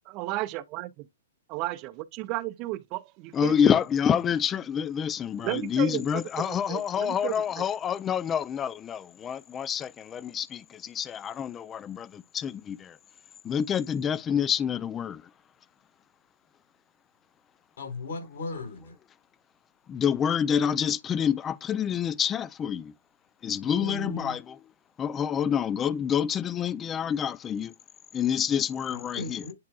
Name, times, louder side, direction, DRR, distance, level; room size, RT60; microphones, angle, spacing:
voice 1, 0.1-1.1 1.5-3.5 5.4-6.0 6.4-7.6, right 17 dB, 35° right, 0.5 m, -33 dB
voice 2, 3.3-13.0 13.4-15.3 19.9-22.9 23.4-24.6 25.0-27.7 28.1-29.4, left 8 dB, 20° left, 0.4 m, -27 dB
voice 3, 17.8-18.9 23.4-24.4 28.9-29.5, left 2 dB, 65° left, 4.2 m, -37 dB
9.6 x 4.6 x 2.3 m
figure-of-eight pair, 115°, 0 cm